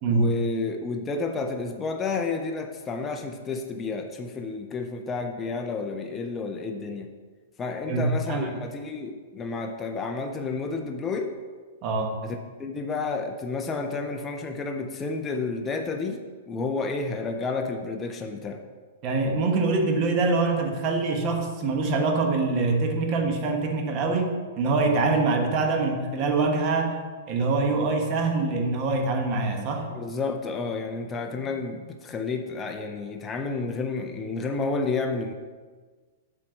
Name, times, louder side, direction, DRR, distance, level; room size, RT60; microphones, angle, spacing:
voice 1, 0.1-7.1 7.6-11.3 12.2-18.6 29.9-35.3, left 4 dB, 15° left, 4 dB, 0.5 m, -31 dB
voice 2, 7.8-8.5 11.8-12.1 19.0-27.0 27.3-29.9, right 3 dB, 30° right, 3 dB, 1.1 m, -24 dB
7.7 x 4.2 x 6.4 m, 1.5 s
hypercardioid pair, 160°, 0 cm